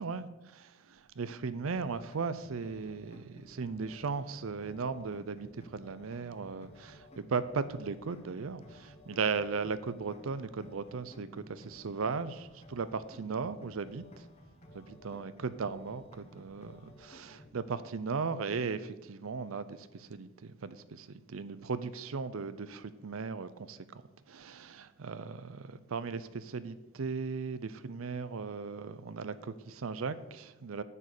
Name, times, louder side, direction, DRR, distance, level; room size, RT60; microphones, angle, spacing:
voice 1, 0.0-14.2 14.8-23.8 24.3-30.8, right 5 dB, 85° right, 14 dB, 0.6 m, -37 dB
sound 1, 1.7-17.5, left 1 dB, 30° left, 1.3 m, -55 dB
9.7 x 7.4 x 6.6 m, 1.1 s
head